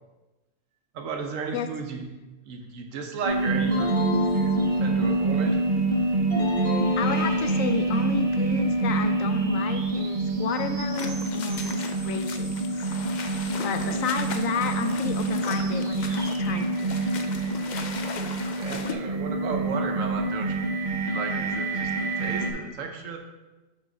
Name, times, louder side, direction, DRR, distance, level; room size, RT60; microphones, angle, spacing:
voice 1, 0.9-2.0 2.4-3.9 4.3-4.5 4.8-5.6 13.8-14.0 18.3-20.6 21.0-23.2, right 5 dB, 80° right, 4 dB, 1.2 m, -34 dB
sound 1, 3.2-22.5, right 2 dB, 40° right, 0.8 m, -26 dB
sound 2, 3.7-5.3 6.3-7.9, left 5 dB, 50° left, 1.8 m, -33 dB
voice 2, 7.0-13.0 13.6-16.9 17.3-17.5, left 6 dB, 90° left, 8 dB, 1.0 m, -32 dB
sound 3, 10.9-18.9, left 5 dB, 65° left, 0.4 m, -38 dB
6.8 x 3.6 x 5.2 m, 1.1 s
omnidirectional pair, 1.3 m